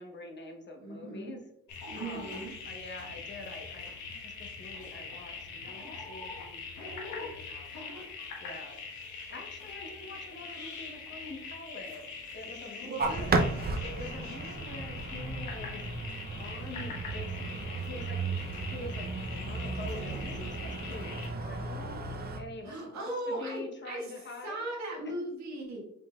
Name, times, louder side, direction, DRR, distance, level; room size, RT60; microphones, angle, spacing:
voice 1, 0.0-1.4 1.9-7.9 8.4-8.8 9.3-12.1 12.3-13.4 13.8-17.5 17.8-18.2 18.6-19.1 19.4-22.1 22.3-24.7, left 2 dB, 35° left, 2 dB, 0.9 m, -45 dB
voice 2, 0.8-1.3 1.8-2.5 12.8-13.4 22.6-24.1 24.4-25.8, right 1 dB, 65° right, -2 dB, 1.7 m, -38 dB
sound 1, 1.7-21.3, left 4 dB, 75° left, 1.2 m, -43 dB
sound 2, 13.0-22.4, right 3 dB, 30° right, 0.6 m, -34 dB
5.1 x 3.9 x 2.3 m, 0.77 s
cardioid pair, 90°, 30 cm